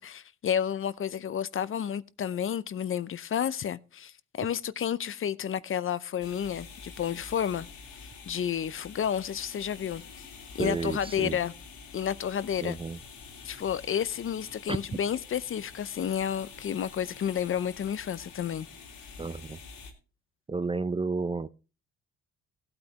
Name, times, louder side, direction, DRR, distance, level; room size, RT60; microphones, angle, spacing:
voice 1, 0.0-7.7 7.9-10.0 10.6-11.5 11.9-12.8 13.4-18.7, left 9 dB, 45° left, 0.6 m, -31 dB
sound 1, 6.2-19.9, left 5 dB, 80° left, 3.1 m, -47 dB
voice 2, 10.6-11.4 12.6-13.0 14.7-14.8 19.2-19.6 20.5-21.5, right 4 dB, 20° right, 0.4 m, -31 dB
16.5 x 8.8 x 3.0 m
cardioid pair, 90°, 30 cm